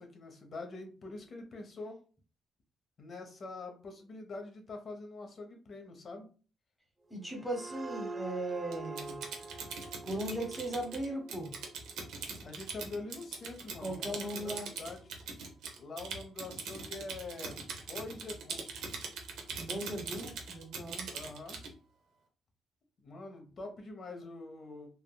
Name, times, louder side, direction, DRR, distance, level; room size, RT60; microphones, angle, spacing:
voice 1, 0.0-2.0 3.0-6.3 12.4-15.2 15.8-18.6 21.1-21.6 23.0-24.9, left 3 dB, 50° left, 4 dB, 0.8 m, -45 dB
voice 2, 7.1-9.2 10.0-11.5 13.8-14.7 19.6-21.1, right 1 dB, 5° left, 2 dB, 1.0 m, -38 dB
sound 1, 7.1-12.5, right 3 dB, 25° right, 0.6 m, -46 dB
Typing, 8.7-21.7, right 5 dB, 85° right, 0.6 m, -42 dB
3.4 x 2.1 x 2.2 m, 0.38 s
cardioid pair, 90°, 0 cm